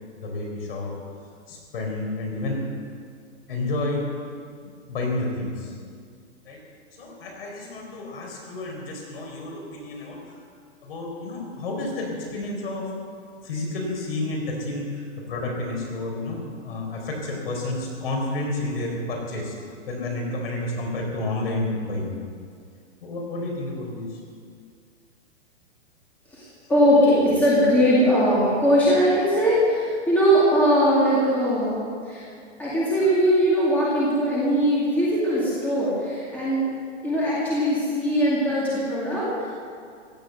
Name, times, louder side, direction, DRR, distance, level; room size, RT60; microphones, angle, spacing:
voice 1, 0.2-0.9 1.5-2.6 3.5-4.1 4.6-5.7 6.5-6.6 6.9-10.2 10.8-12.9 13.4-19.6 19.9-22.2 23.0-24.2, left 2 dB, 50° left, 1 dB, 4.4 m, -30 dB
voice 2, 26.3-32.3 32.6-36.6 37.0-39.5, equal, 5° left, -8 dB, 2.2 m, -20 dB
16.5 x 10.5 x 7.8 m, 2.2 s
hypercardioid pair, 175°, 36 cm